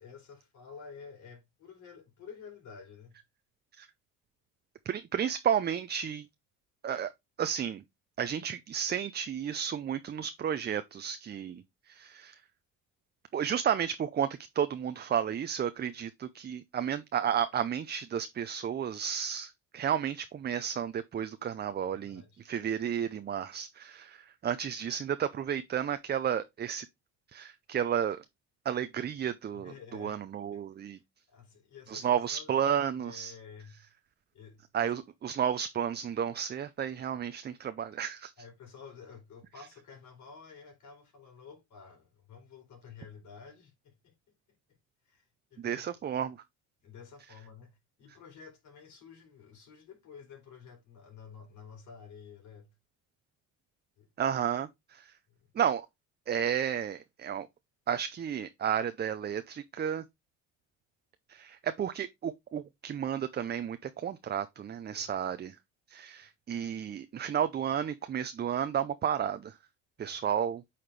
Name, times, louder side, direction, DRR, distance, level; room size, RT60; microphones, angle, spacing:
voice 1, 0.0-3.2 21.9-22.4 29.5-30.3 30.5-30.6 31.3-32.5 33.0-33.9 34.3-34.9 38.4-44.2 44.7-44.8 45.0-45.8 46.8-52.7 54.0-54.1 55.3-55.5 64.9-65.2 70.0-70.2, left 6 dB, 60° left, 4.0 m, -51 dB
voice 2, 4.9-6.3 6.8-7.1 7.4-7.8 8.2-12.4 13.3-14.3 14.5-26.9 27.3-28.2 28.6-31.0 31.9-33.3 34.7-38.3 45.6-46.4 54.2-55.1 55.5-55.9 56.3-57.5 57.9-60.0 61.3-65.6 65.9-69.6 70.0-70.6, right 8 dB, 30° right, 0.5 m, -32 dB
8.8 x 4.3 x 3.2 m
cardioid pair, 95°, 33 cm